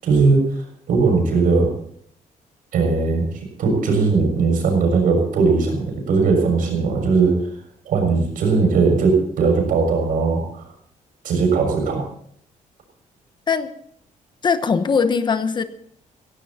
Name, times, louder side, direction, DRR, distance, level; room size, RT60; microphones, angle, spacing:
voice 1, 0.0-1.7 2.7-3.3 3.6-7.4 7.8-10.7 11.2-12.0, right 4 dB, 80° right, 3 dB, 6.6 m, -19 dB
voice 2, 14.4-15.6, left 5 dB, 30° left, 11 dB, 0.9 m, -20 dB
16.5 x 16.5 x 4.3 m, 0.62 s
wide cardioid pair, 170°, 14 cm